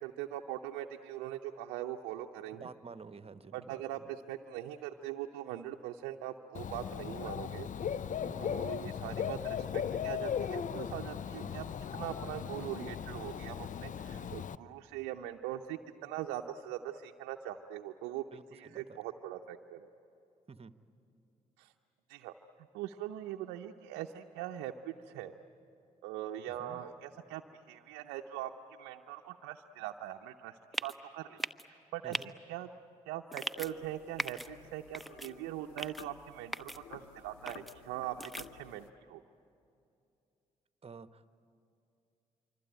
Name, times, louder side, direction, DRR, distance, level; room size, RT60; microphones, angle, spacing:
voice 1, 0.0-2.7 3.5-7.7 8.4-11.7 11.9-19.9 21.6-21.7 22.1-22.3 22.7-25.3 26.0-28.5 28.8-31.4 31.7-32.2 32.5-32.7 33.1-39.2, right 12 dB, 80° right, 3 dB, 0.7 m, -42 dB
voice 2, 2.5-4.1 8.2-8.6 11.4-11.6 18.3-19.0 20.5-20.7 26.6-26.8 32.0-32.3 40.8-41.3, right 5 dB, 35° right, 12 dB, 1.1 m, -50 dB
Dog / Bird, 6.5-14.5, left 8 dB, 50° left, 0.6 m, -37 dB
sound 1, 30.7-31.0 31.4-31.6 32.1-32.2 33.3-33.7 34.2-34.5 34.9-35.3 35.8-36.0 36.5-36.8 37.5-37.7 38.2-38.5, equal, ahead, 0.9 m, -38 dB
sound 2, 33.6-38.9, left 8 dB, 85° left, 0.8 m, -54 dB
25.0 x 25.0 x 9.0 m, 2.7 s
hypercardioid pair, 40°, 17 cm